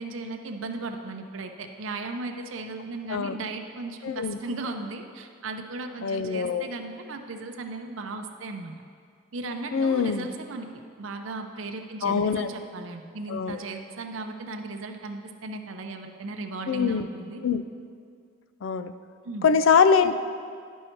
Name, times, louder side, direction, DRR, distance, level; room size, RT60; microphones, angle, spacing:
voice 1, 0.0-8.7 9.3-10.7 11.0-17.4 19.2-19.5, right 3 dB, 90° right, 5 dB, 0.6 m, -36 dB
voice 2, 4.0-4.4 6.0-6.7 9.7-10.3 12.0-12.5 13.3-13.6 16.7-17.1 17.4-17.6 18.6-18.9 19.4-20.1, left 6 dB, 80° left, 12 dB, 0.4 m, -23 dB
11.0 x 5.4 x 4.5 m, 2.2 s
head